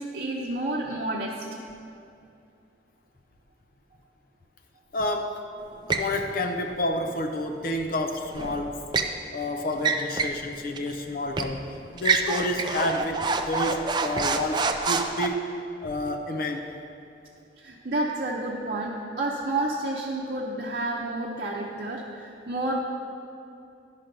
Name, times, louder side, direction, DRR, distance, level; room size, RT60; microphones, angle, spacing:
voice 1, 0.0-1.5 17.6-22.8, right 2 dB, 55° right, -3 dB, 0.8 m, -30 dB
voice 2, 4.9-5.4 5.9-8.8 9.3-15.4 15.8-16.7, left 1 dB, 50° left, 4 dB, 0.6 m, -29 dB
sound 1, 5.9-6.1 8.3-9.2 9.8-10.4 10.8-10.9 11.4-11.6 12.0-15.3, right 4 dB, 25° right, 0.4 m, -27 dB
11.5 x 5.7 x 5.2 m, 2.5 s
head